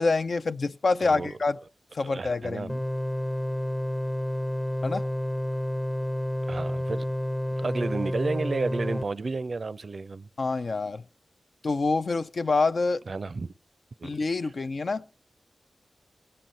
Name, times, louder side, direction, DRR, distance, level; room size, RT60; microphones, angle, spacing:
voice 1, 0.0-1.6 1.9-2.8 4.8-5.0 10.4-11.0 11.6-13.0 14.0-15.0, left 3 dB, 60° left, 0.4 m, -26 dB
voice 2, 1.0-1.4 2.0-2.7 6.5-7.1 7.6-10.3 13.1-13.5 14.0-14.2, right 3 dB, 55° right, 0.4 m, -32 dB
sound 1, 2.7-9.0, left 1 dB, 10° left, 0.6 m, -30 dB
19.0 x 7.7 x 4.1 m
wide cardioid pair, 70°, 0 cm